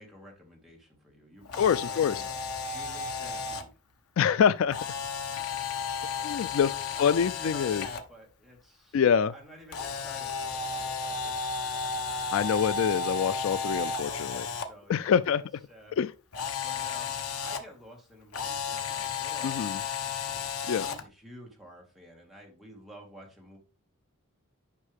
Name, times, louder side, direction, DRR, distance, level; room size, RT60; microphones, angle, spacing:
voice 1, 0.0-2.3 2.6-3.8 6.5-9.0 9.3-11.7 14.0-16.0 16.6-17.1 17.4-19.6 20.7-23.6, equal, ahead, 2.0 m, -50 dB
Camera, 1.4-3.6 4.7-8.0 9.7-14.6 16.3-17.6 18.3-21.0, left 5 dB, 80° left, 1.0 m, -33 dB
voice 2, 1.6-2.2 4.2-4.8 6.2-6.7 7.0-7.9 8.9-9.3 12.3-14.5 14.9-15.4 15.9-16.1 19.4-19.8 20.7-20.9, left 7 dB, 60° left, 0.3 m, -25 dB
9.8 x 5.4 x 3.5 m
head